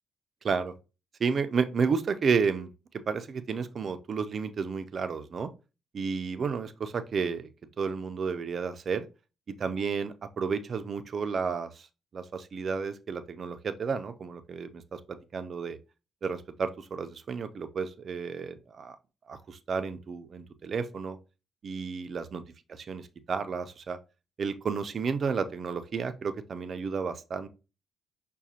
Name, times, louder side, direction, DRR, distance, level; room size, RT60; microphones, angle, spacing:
voice 1, 0.4-0.8 1.2-5.5 5.9-7.5 7.8-9.1 9.5-11.9 12.1-15.8 16.2-19.0 19.3-21.2 21.6-22.4 22.7-24.0 24.4-27.5, right 5 dB, 50° right, 0.5 m, -32 dB
5.9 x 2.2 x 2.8 m
cardioid pair, 90°, 0 cm